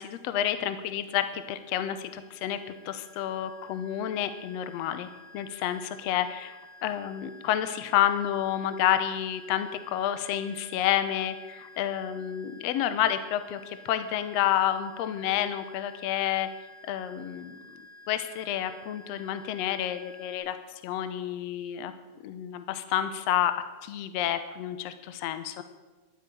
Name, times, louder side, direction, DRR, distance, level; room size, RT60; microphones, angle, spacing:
voice 1, 0.0-2.6 2.9-5.1 5.3-16.5 16.9-17.6 18.1-20.6 20.8-21.9 22.2-23.5 23.8-25.6, left 11 dB, 70° left, 10 dB, 1.8 m, -29 dB
sound 1, 1.3-20.4, left 2 dB, 45° left, 4.4 m, -52 dB
11.5 x 9.8 x 9.2 m, 1.2 s
omnidirectional pair, 3.4 m